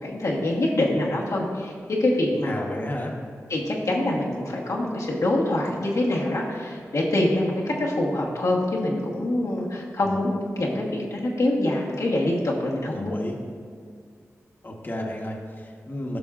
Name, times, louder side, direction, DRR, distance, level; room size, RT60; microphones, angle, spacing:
voice 1, 0.0-2.5 3.5-10.3 10.6-13.1, left 1 dB, 70° left, -4 dB, 1.2 m, -25 dB
voice 2, 2.4-3.1 10.0-10.1 12.9-13.4 14.6-16.2, left 1 dB, 35° left, -1 dB, 1.1 m, -33 dB
14.0 x 5.3 x 2.4 m, 2.1 s
cardioid pair, 50°, 6 cm